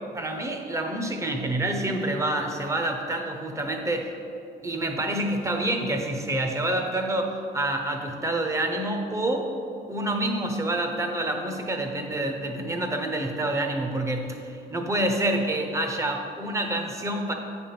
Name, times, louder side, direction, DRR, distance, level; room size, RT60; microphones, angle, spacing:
voice 1, 0.1-4.1 4.6-9.5 9.9-17.3, right 1 dB, 15° right, 3 dB, 0.8 m, -27 dB
8.4 x 3.5 x 5.8 m, 2.6 s
cardioid pair, 110°, 17 cm